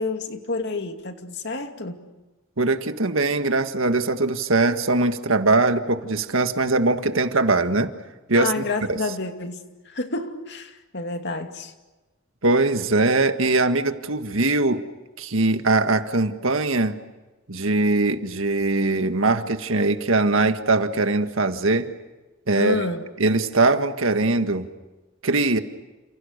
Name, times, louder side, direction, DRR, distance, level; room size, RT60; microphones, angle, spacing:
voice 1, 0.0-2.0 8.3-11.7 22.6-23.0, left 3 dB, 55° left, 6 dB, 2.5 m, -29 dB
voice 2, 2.6-7.9 8.3-9.0 12.4-14.8 15.2-17.0 17.5-21.9 22.5-22.8 23.2-24.7 25.2-25.6, right 2 dB, 75° right, 8 dB, 1.8 m, -21 dB
30.0 x 28.5 x 6.7 m, 1.1 s
head